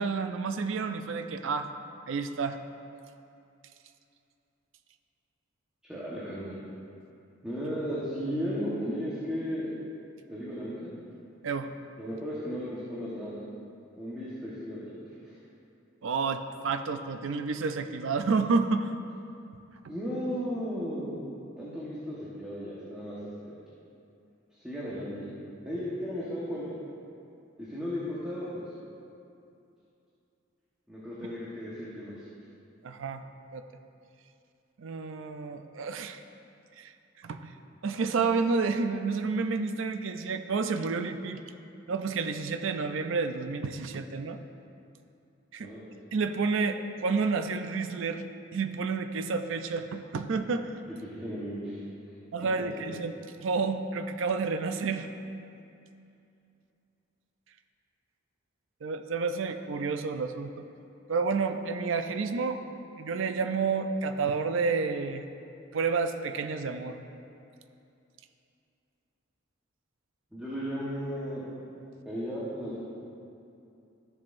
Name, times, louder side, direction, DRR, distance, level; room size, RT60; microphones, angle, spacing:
voice 1, 0.0-1.7 2.1-2.6 11.4-11.7 16.0-18.9 32.8-33.2 33.5-33.6 34.8-36.2 36.8-37.5 37.8-41.4 41.9-44.4 45.5-45.7 46.1-48.2 48.5-50.7 52.3-55.1 58.8-60.7 61.1-62.6 63.0-65.2 65.7-67.0, right 4 dB, 70° right, 8 dB, 0.4 m, -30 dB
voice 2, 5.9-6.6 7.4-9.7 10.3-10.9 12.0-13.4 13.9-15.4 19.9-21.2 21.6-23.6 24.6-25.4 25.6-26.7 27.6-28.7 30.9-32.3 45.6-45.8 50.9-51.8 52.4-52.9 70.3-71.5 72.0-72.8, equal, 5° right, -10 dB, 1.2 m, -35 dB
13.5 x 7.4 x 2.6 m, 2.7 s
head